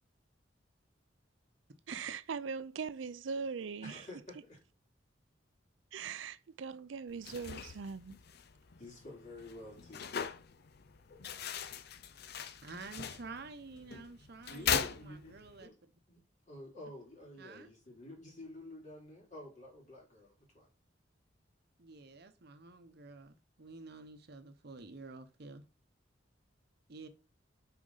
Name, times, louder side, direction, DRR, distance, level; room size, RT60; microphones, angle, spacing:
voice 1, 1.9-4.0 5.9-8.2, right 5 dB, 85° right, 0.5 m, -40 dB
voice 2, 3.8-4.6 8.8-10.2 14.5-15.3 15.6-15.7 16.1-16.2 16.5-20.7, left 1 dB, 40° left, 3.1 m, -50 dB
sound 1, 7.1-15.7, left 7 dB, 60° left, 0.6 m, -40 dB
voice 3, 12.6-15.7 17.4-17.7 21.8-25.6 26.9-27.1, right 3 dB, 60° right, 0.8 m, -50 dB
6.3 x 5.0 x 4.0 m
head